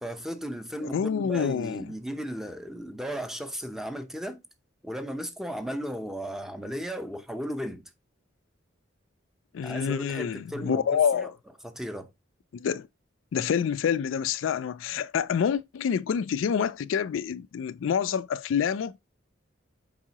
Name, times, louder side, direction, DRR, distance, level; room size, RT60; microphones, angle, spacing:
voice 1, 0.0-4.4 4.8-7.8 9.6-11.3 11.6-12.1, equal, ahead, 0.7 m, -35 dB
voice 2, 0.8-1.8 9.5-11.3 12.5-12.9 13.3-18.9, left 7 dB, 85° left, 0.3 m, -27 dB
7.2 x 4.8 x 2.9 m
head